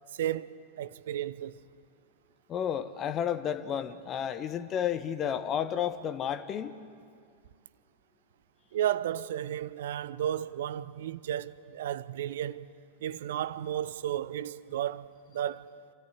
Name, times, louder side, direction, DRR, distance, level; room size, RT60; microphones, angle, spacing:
voice 1, 0.1-1.5 8.7-12.7 13.0-15.1 15.3-15.7, right 11 dB, 60° right, 0.6 m, -33 dB
voice 2, 2.5-6.8, left 9 dB, 30° left, 1.2 m, -32 dB
27.5 x 14.0 x 9.8 m
figure-of-eight pair, 90°, 0 cm